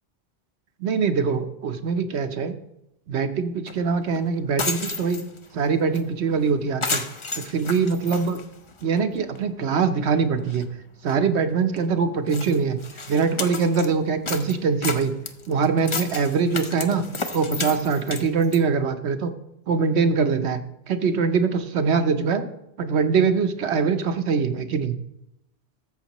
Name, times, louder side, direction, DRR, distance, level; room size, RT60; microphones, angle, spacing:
voice 1, 0.8-2.6 3.1-5.2 5.5-7.0 7.4-8.4 8.8-10.7 11.0-12.8 13.1-15.1 15.5-17.0 17.3-19.3 19.7-20.6 20.9-22.5 22.8-25.0, right 5 dB, 80° right, 8 dB, 1.1 m, -23 dB
sound 1, 3.7-3.8 4.1-4.2 4.5-5.5 5.9-6.0 6.3-6.5 6.8-9.0 9.3-9.4 10.0-10.1 10.4-10.6 11.1-11.2 11.8-11.9 12.3-13.9 14.3-18.6, left 3 dB, 35° left, 0.6 m, -32 dB
13.5 x 7.2 x 3.0 m, 0.84 s
omnidirectional pair, 1.1 m